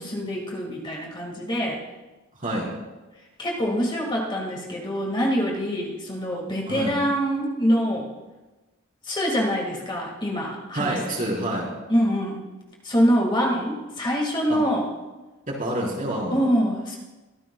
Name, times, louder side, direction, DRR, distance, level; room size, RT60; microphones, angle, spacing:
voice 1, 0.0-1.8 3.4-8.1 9.1-11.0 11.9-12.4 12.8-14.9 16.3-17.0, equal, 25° left, -1 dB, 1.9 m, -24 dB
voice 2, 2.4-2.7 6.7-7.0 10.7-11.7 14.5-14.6 15.5-16.4, right 1 dB, 40° right, -3 dB, 4.4 m, -27 dB
24.0 x 14.0 x 2.3 m, 1.2 s
head